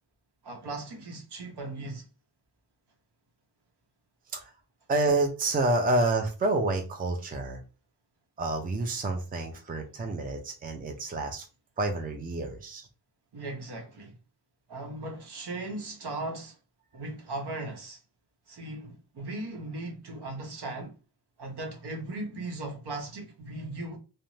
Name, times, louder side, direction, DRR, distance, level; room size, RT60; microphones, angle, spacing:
voice 1, 0.4-2.1 13.3-14.1 14.7-16.6 16.9-18.0 18.5-21.0 21.4-24.0, right 2 dB, 65° right, 0.9 m, -38 dB
voice 2, 4.9-7.6 8.4-11.4 11.8-12.9, right 2 dB, 20° right, 0.5 m, -28 dB
2.5 x 2.1 x 3.0 m
wide cardioid pair, 125°, 42 cm